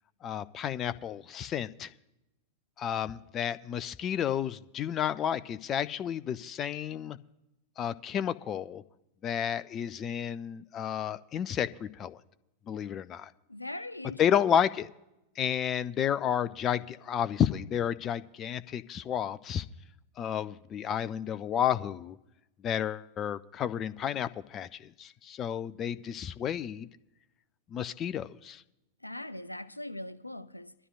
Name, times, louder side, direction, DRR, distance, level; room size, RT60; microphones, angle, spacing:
voice 1, 0.2-1.9 2.8-7.2 7.8-8.8 9.2-12.2 12.7-13.3 14.2-14.9 15.4-19.7 20.2-22.2 22.6-26.9 27.7-28.6, left 9 dB, 30° left, 0.4 m, -31 dB
voice 2, 13.5-14.6 29.0-30.7, left 1 dB, 85° left, 0.5 m, -41 dB
23.0 x 12.5 x 2.4 m
figure-of-eight pair, 90°, 0 cm